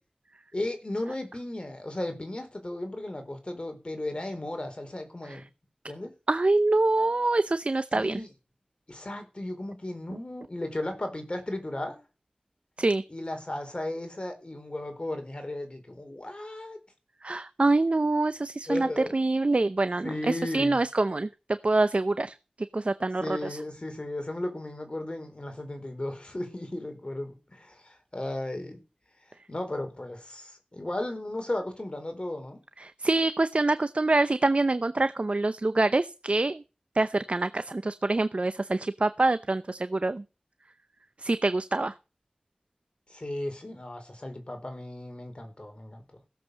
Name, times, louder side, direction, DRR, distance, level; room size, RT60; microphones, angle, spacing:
voice 1, 0.5-5.4 5.9-6.1 7.9-8.3 8.9-12.0 13.1-16.8 18.7-19.1 20.0-20.8 23.2-28.8 29.5-32.6 43.1-46.0, left 1 dB, 45° left, 4.4 m, -35 dB
voice 2, 6.3-8.2 12.8-13.0 17.2-21.3 21.6-22.3 22.7-23.6 32.8-36.6 36.9-40.2 41.2-41.9, right 2 dB, 55° right, 0.7 m, -25 dB
16.0 x 7.6 x 6.5 m
wide cardioid pair, 40°, 2 cm